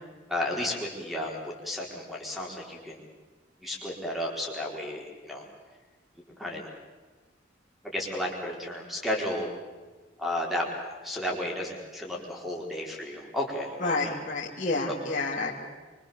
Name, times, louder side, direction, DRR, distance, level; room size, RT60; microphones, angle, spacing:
voice 1, 0.3-3.0 3.6-5.5 6.4-6.7 7.8-9.5 10.2-10.7 11.0-14.1 14.9-15.0, left 1 dB, ahead, -1 dB, 4.6 m, -33 dB
voice 2, 13.8-15.6, left 3 dB, 40° left, -4 dB, 2.7 m, -29 dB
26.0 x 24.5 x 7.2 m, 1.3 s
head